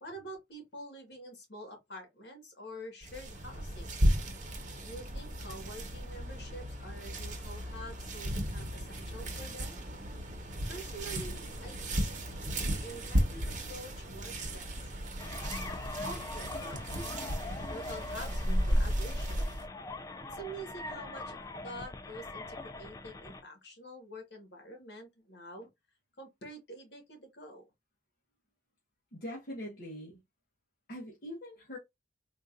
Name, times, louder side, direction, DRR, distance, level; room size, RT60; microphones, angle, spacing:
voice 1, 0.0-3.9 4.8-9.8 10.7-12.2 12.8-14.8 16.0-17.2 17.7-19.5 20.3-21.4 21.6-25.7 26.2-27.7, right 1 dB, 70° left, 1.5 m, -47 dB
sound 1, 3.0-19.7, equal, 45° right, 1.0 m, -34 dB
sound 2, 15.2-23.4, left 2 dB, 20° left, 0.3 m, -42 dB
voice 2, 29.1-30.2 30.9-31.8, equal, 55° left, 0.9 m, -42 dB
3.8 x 2.5 x 2.4 m
head